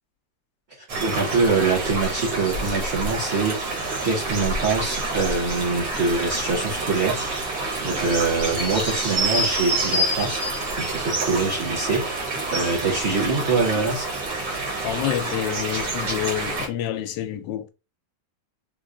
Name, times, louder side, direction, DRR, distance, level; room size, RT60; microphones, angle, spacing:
sound 1, 0.9-16.7, right 2 dB, 85° right, 1.9 m, -27 dB
voice 1, 1.0-3.8 4.0-7.3 7.8-10.4 10.8-12.1 12.5-14.1, right 4 dB, 45° right, 1.1 m, -24 dB
voice 2, 14.8-17.7, left 11 dB, 85° left, 1.2 m, -28 dB
3.4 x 3.0 x 2.4 m
omnidirectional pair, 1.9 m